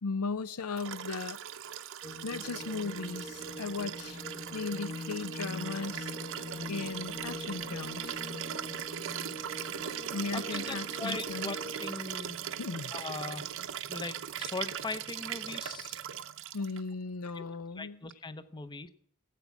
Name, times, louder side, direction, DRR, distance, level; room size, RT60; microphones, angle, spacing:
voice 1, 0.0-1.4 2.2-4.2 4.5-6.1 6.7-8.2 10.1-11.6 12.6-12.9 16.5-18.0, left 4 dB, 80° left, 0.6 m, -37 dB
Liquid, 0.8-16.8 18.1-18.2, right 9 dB, 65° right, 0.7 m, -39 dB
sound 1, 2.0-11.9, left 1 dB, 40° left, 1.2 m, -43 dB
voice 2, 6.6-6.9 10.3-12.4 12.9-13.5 13.9-16.0 17.3-17.5 17.7-18.9, left 3 dB, 20° left, 0.7 m, -40 dB
16.5 x 8.3 x 5.9 m
head